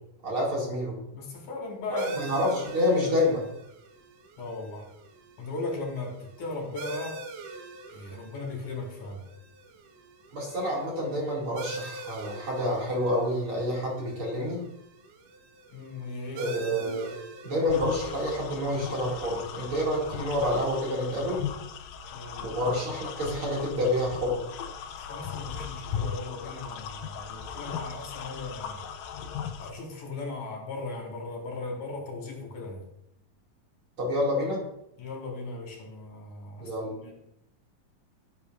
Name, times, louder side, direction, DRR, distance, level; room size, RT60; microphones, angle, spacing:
voice 1, 0.2-1.0 1.9-3.4 10.3-14.6 16.4-17.1 17.4-21.5 22.4-24.4 34.0-34.7 36.6-36.9, left 1 dB, 40° right, -4 dB, 2.9 m, -28 dB
voice 2, 1.1-2.3 4.4-4.9 5.4-7.2 7.9-9.2 15.7-16.5 22.1-22.6 24.9-28.8 29.6-32.8 35.0-37.1, left 3 dB, 60° left, 1 dB, 3.4 m, -37 dB
sound 1, 2.0-21.1, right 3 dB, 70° right, 2.5 m, -44 dB
sound 2, 17.7-29.7, left 7 dB, 80° left, 2.4 m, -38 dB
16.5 x 8.6 x 2.5 m, 0.80 s
omnidirectional pair, 4.0 m